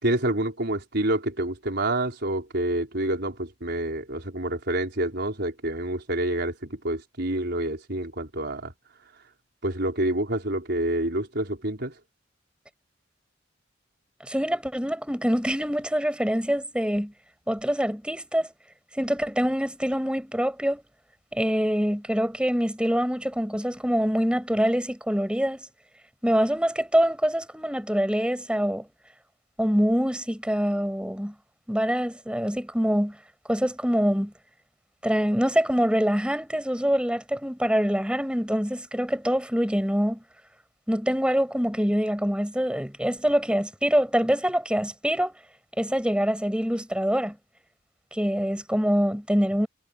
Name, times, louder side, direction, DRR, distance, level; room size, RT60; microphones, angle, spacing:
voice 1, 0.0-8.7 9.6-11.9, right 1 dB, 60° right, 4.9 m, -28 dB
voice 2, 14.2-17.1 17.5-18.5 18.9-20.8 21.3-25.7 26.2-28.9 29.6-31.3 31.7-33.2 33.5-34.3 35.0-40.2 40.9-45.3 45.8-47.4 48.1-49.7, equal, 5° right, 6.2 m, -25 dB
head